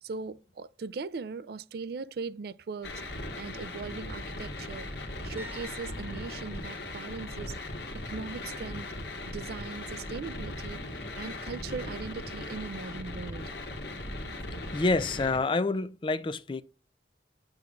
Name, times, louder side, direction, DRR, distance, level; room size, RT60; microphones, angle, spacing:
voice 1, 0.0-3.0 3.4-4.9 5.2-7.6 7.9-8.9 9.3-10.8 11.2-13.5, right 4 dB, 60° right, 0.4 m, -39 dB
sound 1, 2.8-15.4, left 2 dB, 70° left, 1.4 m, -39 dB
sound 2, 4.2-12.2, left 2 dB, 85° right, 3.4 m, -56 dB
sound 3, 5.4-9.1 9.4-9.8 12.7-12.8, right 1 dB, 10° right, 1.3 m, -54 dB
voice 2, 14.7-16.6, left 3 dB, 30° left, 0.4 m, -27 dB
7.7 x 7.0 x 2.4 m
head